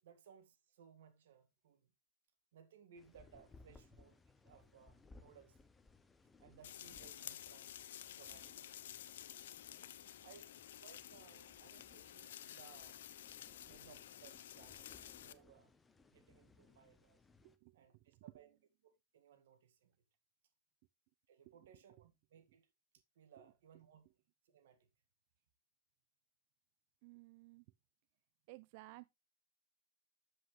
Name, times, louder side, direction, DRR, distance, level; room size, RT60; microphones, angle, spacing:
voice 1, 0.0-1.9 2.5-5.6 6.4-7.8 8.1-9.1 10.2-13.1 13.5-15.7 16.1-17.2 17.7-18.6 18.8-20.0 21.3-22.7 23.2-24.1 24.5-24.9, right 7 dB, 85° right, 1.7 m, -63 dB
sound 1, 3.0-17.6, left 3 dB, 10° left, 0.8 m, -65 dB
sound 2, 6.6-15.3, left 11 dB, 90° left, 0.7 m, -52 dB
voice 2, 17.4-18.6 21.4-22.1 22.5-22.6 23.4-24.1 27.0-27.7 28.5-29.1, right 21 dB, 55° right, 0.3 m, -59 dB
7.8 x 7.7 x 3.1 m
supercardioid pair, 145°, 0 cm